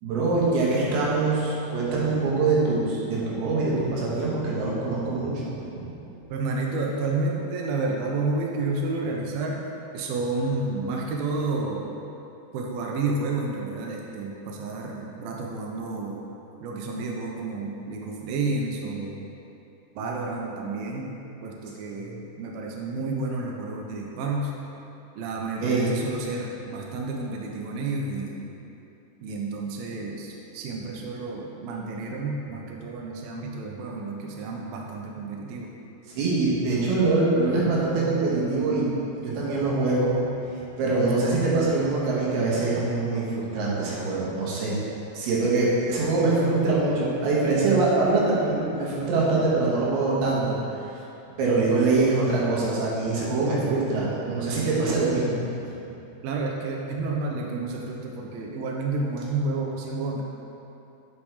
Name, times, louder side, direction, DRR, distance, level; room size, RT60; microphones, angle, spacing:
voice 1, 0.0-5.6 25.6-25.9 36.1-38.9 39.2-40.2 40.5-44.8 45.1-50.8 51.4-55.4, right 3 dB, 70° right, -5 dB, 3.1 m, -24 dB
voice 2, 6.3-9.6 9.9-12.0 12.5-16.2 16.6-19.3 20.0-21.2 21.4-24.5 25.2-28.5 29.2-35.7 56.2-60.2, right 3 dB, 90° right, -1 dB, 2.1 m, -30 dB
11.0 x 5.2 x 3.4 m, 2.8 s
omnidirectional pair, 5.1 m